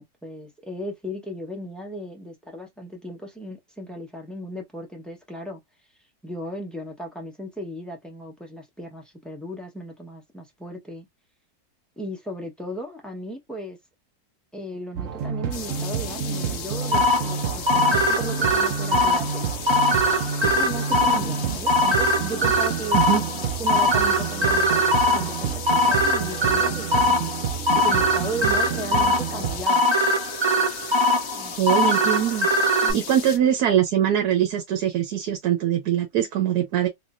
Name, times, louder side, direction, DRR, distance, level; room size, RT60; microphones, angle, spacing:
voice 1, 0.0-5.6 6.2-11.1 12.0-13.8 14.5-19.5 20.4-23.0 23.6-27.3 27.7-29.9 31.3-31.5 31.8-32.0 32.8-33.0, right 1 dB, ahead, 0.8 m, -36 dB
sound 1, 14.9-29.7, right 8 dB, 60° right, 1.0 m, -30 dB
sound 2, 15.5-33.4, left 7 dB, 60° left, 0.9 m, -36 dB
sound 3, 16.9-32.9, left 1 dB, 30° right, 0.5 m, -22 dB
voice 2, 31.6-32.5 32.9-36.9, right 10 dB, 85° right, 1.3 m, -22 dB
3.5 x 2.9 x 2.5 m
omnidirectional pair, 1.6 m